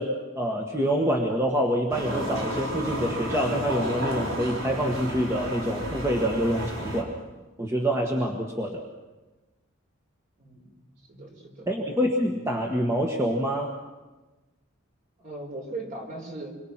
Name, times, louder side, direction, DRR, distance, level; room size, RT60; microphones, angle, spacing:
voice 1, 0.0-7.1 7.6-8.8 11.7-13.7, equal, 15° right, 0 dB, 1.6 m, -26 dB
sound 1, 1.9-7.0, equal, 90° right, 4.7 m, -32 dB
voice 2, 10.4-10.7 11.1-11.7 15.2-16.6, right 2 dB, 40° right, 2 dB, 4.2 m, -38 dB
27.0 x 22.5 x 6.0 m, 1.2 s
head